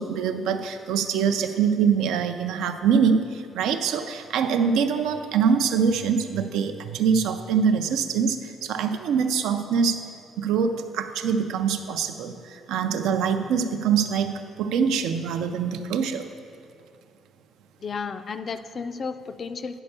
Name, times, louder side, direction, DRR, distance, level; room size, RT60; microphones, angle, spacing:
voice 1, 0.0-10.1 10.4-16.3, right 6 dB, 85° right, 8 dB, 0.5 m, -24 dB
voice 2, 17.8-19.8, left 5 dB, 35° left, 11 dB, 0.3 m, -33 dB
9.9 x 4.4 x 6.7 m, 2.4 s
cardioid pair, 150°, 0 cm